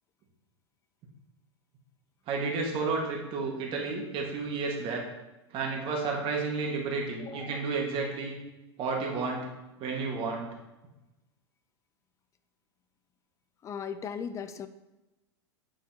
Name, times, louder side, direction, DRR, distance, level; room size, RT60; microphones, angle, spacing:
voice 1, 2.3-5.0 5.5-8.4 8.8-9.4 9.8-10.5, right 4 dB, 35° right, 0 dB, 1.6 m, -31 dB
voice 2, 7.2-7.6 13.6-14.7, left 7 dB, 20° left, 11 dB, 0.4 m, -38 dB
8.5 x 5.7 x 2.9 m, 1.0 s
hypercardioid pair, 125°, 15 cm